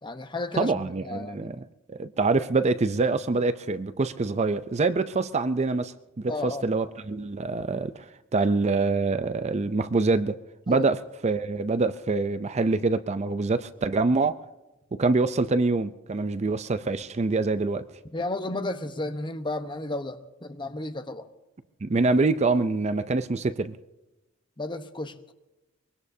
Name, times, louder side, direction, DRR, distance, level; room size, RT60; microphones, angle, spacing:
voice 1, 0.0-0.7 1.0-1.6 6.3-6.6 10.7-10.8 18.1-21.3 24.6-25.1, left 2 dB, 25° left, 1.0 m, -33 dB
voice 2, 0.5-8.0 8.3-10.4 10.7-14.4 14.9-17.8 21.8-23.8, right 3 dB, 35° right, 0.5 m, -25 dB
24.0 x 22.0 x 2.7 m
head